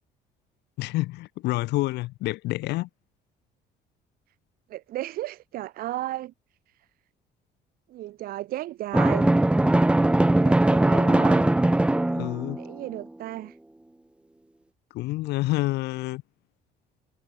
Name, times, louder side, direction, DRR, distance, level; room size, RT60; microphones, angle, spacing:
voice 1, 0.8-2.9 12.1-12.6 14.9-16.2, left 19 dB, 80° left, 1.0 m, -28 dB
voice 2, 4.7-6.3 7.9-9.3 10.4-11.5 12.5-13.6, right 15 dB, 60° right, 0.5 m, -34 dB
Drum, 8.9-12.7, right 1 dB, 5° right, 0.5 m, -20 dB
cardioid pair, 110°, 17 cm